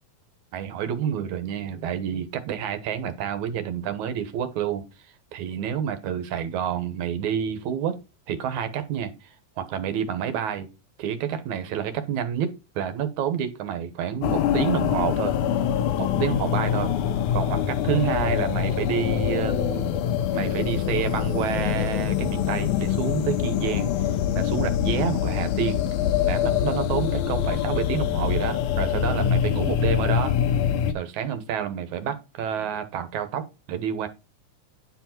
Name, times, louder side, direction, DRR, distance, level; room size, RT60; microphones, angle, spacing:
voice 1, 0.5-4.8 5.3-8.0 8.3-10.7 11.0-15.3 16.0-16.9 17.3-19.9 20.3-23.9 24.4-25.8 26.3-30.3 30.9-34.1, right 9 dB, 75° right, 2.5 m, -29 dB
sound 1, 14.2-30.9, left 9 dB, 80° left, 2.3 m, -24 dB
10.0 x 4.8 x 5.9 m
omnidirectional pair, 3.5 m